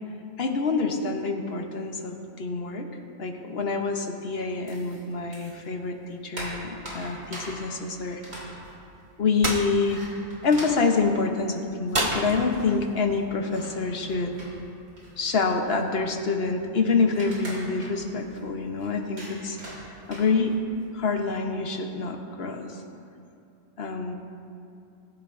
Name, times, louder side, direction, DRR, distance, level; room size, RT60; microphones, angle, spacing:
voice 1, 0.4-2.9 3.2-8.2 9.2-10.0 10.4-14.3 15.2-20.6 20.9-22.8 23.8-24.1, left 4 dB, 50° left, 4 dB, 1.2 m, -27 dB
sound 1, 4.7-5.7 6.0-11.9 12.2-12.3 12.5-20.8, equal, 85° right, 3.6 m, -43 dB
sound 2, 9.4-9.7 11.9-12.9, right 1 dB, 25° right, 1.0 m, -27 dB
21.5 x 11.0 x 2.6 m, 2.6 s
omnidirectional pair, 1.5 m